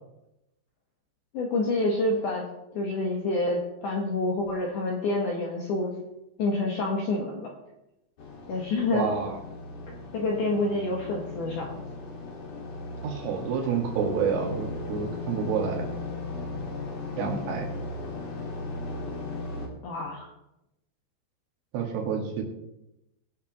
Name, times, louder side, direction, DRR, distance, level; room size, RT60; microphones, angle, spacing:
voice 1, 1.3-2.5 2.7-5.9 6.4-7.5 8.5-9.1 10.1-11.8 19.8-20.3, left 2 dB, 70° left, -1 dB, 2.0 m, -27 dB
sound 1, 8.2-19.7, left 2 dB, 50° left, 2.2 m, -37 dB
voice 2, 8.9-9.4 13.0-15.8 17.2-17.7 21.7-22.4, right 6 dB, 85° right, 0 dB, 4.4 m, -28 dB
21.0 x 7.2 x 3.0 m, 0.89 s
omnidirectional pair, 5.5 m